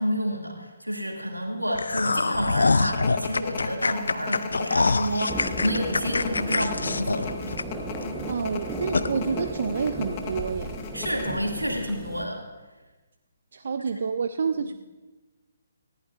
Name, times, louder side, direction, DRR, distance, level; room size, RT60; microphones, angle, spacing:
voice 1, 0.0-7.3 10.9-12.4, equal, 90° right, 1 dB, 2.3 m, -29 dB
sound 1, 1.7-8.0 8.4-8.5 8.9-9.1, left 3 dB, 70° left, 0.5 m, -25 dB
sound 2, 2.9-11.3, left 5 dB, 30° left, 1.2 m, -36 dB
sound 3, 5.3-12.2, right 2 dB, 5° right, 1.0 m, -35 dB
voice 2, 8.3-10.8 13.5-14.7, right 5 dB, 55° right, 10 dB, 0.4 m, -28 dB
19.0 x 14.5 x 2.5 m, 1.2 s
figure-of-eight pair, 135°, 0 cm